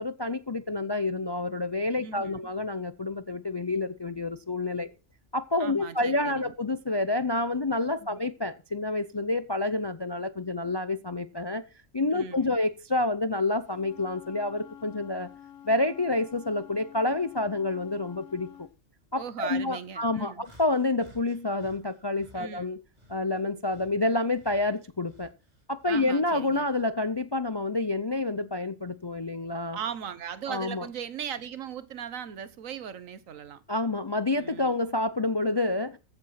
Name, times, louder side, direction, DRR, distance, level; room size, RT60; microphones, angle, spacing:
voice 1, 0.0-4.9 5.3-11.6 11.9-15.3 15.6-18.7 19.1-22.8 23.1-25.3 25.7-29.8 30.5-30.9 33.7-36.0, left 2 dB, 40° left, 0.3 m, -28 dB
voice 2, 2.0-2.5 5.6-6.5 8.1-8.2 12.1-12.6 19.2-20.4 22.3-22.7 25.9-26.6 29.7-33.6 34.4-34.8, right 8 dB, 90° right, 1.4 m, -38 dB
Wind instrument woodwind instrument, 13.7-18.7, left 9 dB, 85° left, 1.3 m, -49 dB
sound 1, 20.4-22.4 22.9-26.2 26.6-28.1 28.8-29.0 29.9-30.1, equal, 30° right, 3.3 m, -57 dB
15.0 x 7.7 x 5.7 m
omnidirectional pair, 1.3 m